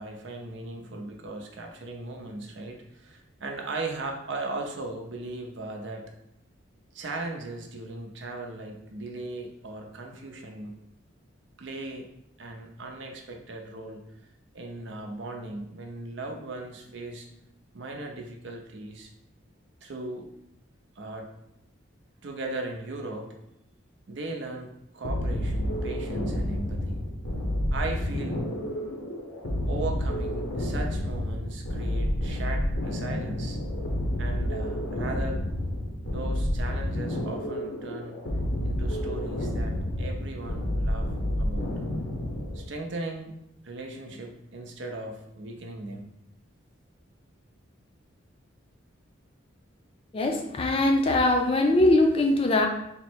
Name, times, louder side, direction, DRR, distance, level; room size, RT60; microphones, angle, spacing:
voice 1, 0.0-6.0 6.9-10.8 11.6-12.1 12.4-14.0 14.5-17.3 17.7-19.1 19.8-20.3 21.0-21.3 22.2-23.3 24.1-27.0 27.7-28.4 29.7-33.6 34.2-35.4 36.1-38.2 38.6-41.1 41.4-41.7 42.5-43.3 43.6-46.1, right 2 dB, 70° right, 2 dB, 0.6 m, -37 dB
sound 1, 25.0-42.7, left 1 dB, 85° left, 0.8 m, -30 dB
voice 2, 50.1-52.7, left 2 dB, 30° left, 3 dB, 0.4 m, -22 dB
3.6 x 2.1 x 4.4 m, 0.79 s
head